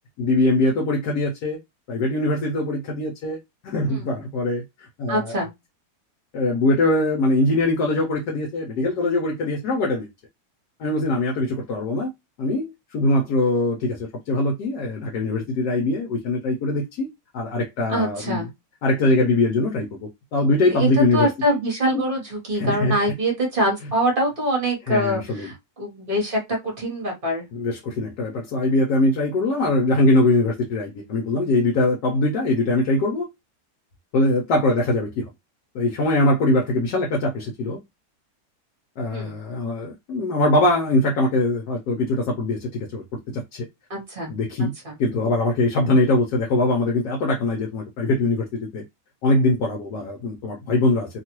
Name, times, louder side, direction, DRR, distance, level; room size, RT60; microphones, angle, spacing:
voice 1, 0.2-1.6 1.9-3.4 3.6-5.4 6.3-10.1 10.8-12.1 12.4-17.1 17.3-18.4 18.8-21.3 21.9-22.0 22.5-23.0 24.9-25.5 27.5-33.3 34.1-35.3 35.7-37.8 39.0-43.7 44.3-44.7 45.0-48.8 49.2-51.2, left 2 dB, 70° left, 1.1 m, -22 dB
voice 2, 5.1-5.5 17.9-18.4 20.8-20.9 21.1-27.4 39.1-39.3 43.9-44.3 44.6-45.0, right 1 dB, 35° right, 1.2 m, -24 dB
2.9 x 2.4 x 2.9 m
omnidirectional pair, 1.9 m